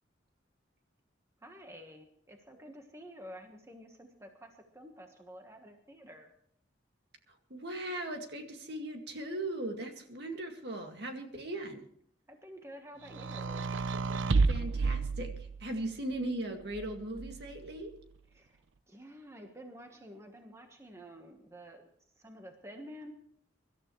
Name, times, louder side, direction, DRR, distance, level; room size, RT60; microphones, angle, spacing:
voice 1, 1.4-6.3 12.3-13.7 18.3-21.9 22.1-23.1, equal, 15° right, 4 dB, 1.3 m, -50 dB
voice 2, 7.5-11.8 14.5-15.3 15.6-17.9, right 1 dB, 55° right, 3 dB, 2.1 m, -38 dB
sound 1, 13.1-15.9 16.7-17.7, right 4 dB, 80° right, 0.7 m, -31 dB
24.5 x 13.0 x 3.2 m, 0.62 s
head